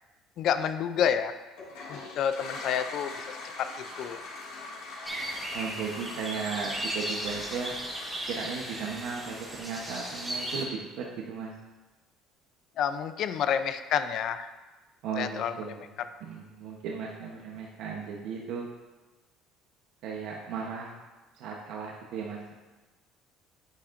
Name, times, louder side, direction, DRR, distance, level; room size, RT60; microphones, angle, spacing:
voice 1, 0.4-1.3 1.9-4.2 12.8-14.5 15.2-16.1, left 8 dB, 50° left, 11 dB, 0.4 m, -29 dB
Toilet flush, 1.5-10.4, left 3 dB, 75° left, 2.1 m, -43 dB
sound 1, 5.0-10.6, right 1 dB, 5° right, 1.2 m, -36 dB
voice 2, 5.5-7.7 8.3-11.5 15.0-15.8 16.2-18.7 20.0-20.9 21.3-22.5, right 6 dB, 65° right, -2 dB, 0.9 m, -36 dB
8.6 x 8.3 x 2.5 m, 1.2 s
cardioid pair, 150°, 0 cm